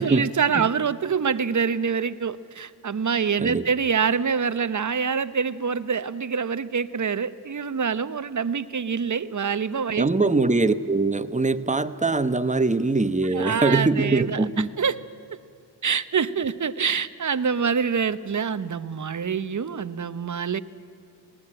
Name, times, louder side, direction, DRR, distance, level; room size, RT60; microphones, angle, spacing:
voice 1, 0.0-10.1 13.3-15.0 15.8-20.6, right 6 dB, 45° right, 14 dB, 0.9 m, -25 dB
voice 2, 10.0-14.7, right 3 dB, 15° right, 12 dB, 1.0 m, -22 dB
19.0 x 18.5 x 8.9 m, 2.3 s
cardioid pair, 40°, 43 cm